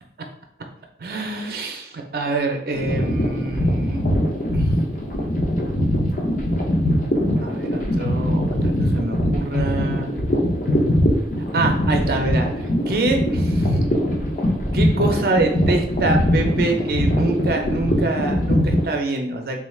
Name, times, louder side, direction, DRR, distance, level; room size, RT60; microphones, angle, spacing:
voice 1, 1.0-4.0 4.5-4.8 7.4-10.1 11.5-12.5 12.9-13.8 14.7-19.6, right 3 dB, 55° right, 3 dB, 0.5 m, -25 dB
sound 1, 2.7-18.8, equal, 45° left, 0.6 m, -21 dB
3.6 x 3.1 x 2.3 m, 0.70 s
head